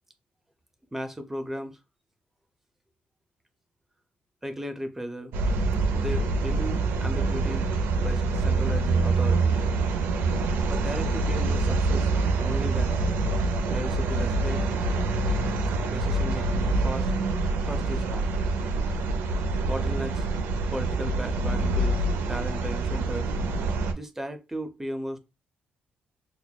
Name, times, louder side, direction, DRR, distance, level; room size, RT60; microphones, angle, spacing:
voice 1, 0.9-1.8 4.4-5.3 5.9-9.6 10.7-12.1 12.4-13.0 13.7-14.7 15.9-17.1 17.6-18.3 19.6-20.3 20.7-23.3 23.9-25.2, equal, 10° right, 0.5 m, -36 dB
sound 1, 5.3-23.9, right 3 dB, 85° right, 0.5 m, -25 dB
6.0 x 2.0 x 2.2 m
cardioid pair, 125°, 4 cm